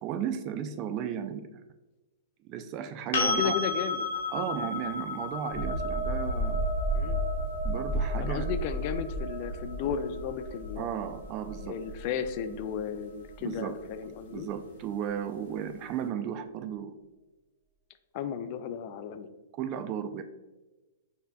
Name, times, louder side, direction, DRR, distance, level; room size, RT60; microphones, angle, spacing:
voice 1, 0.0-1.6 2.4-3.6 4.3-6.6 7.6-8.5 10.8-11.7 13.4-13.7 14.3-17.0 19.6-20.2, right 8 dB, 40° right, 9 dB, 0.4 m, -34 dB
sound 1, 3.1-10.9 13.8-13.9, left 4 dB, 65° left, 0.9 m, -35 dB
voice 2, 3.2-4.1 6.9-7.2 8.2-11.0 11.6-14.5 18.1-19.3, left 7 dB, 45° left, 10 dB, 0.3 m, -34 dB
sound 2, 5.5-13.0 13.3-13.5, right 1 dB, 70° right, 1.3 m, -32 dB
6.6 x 2.7 x 2.3 m, 1.1 s
hypercardioid pair, 115°, 0 cm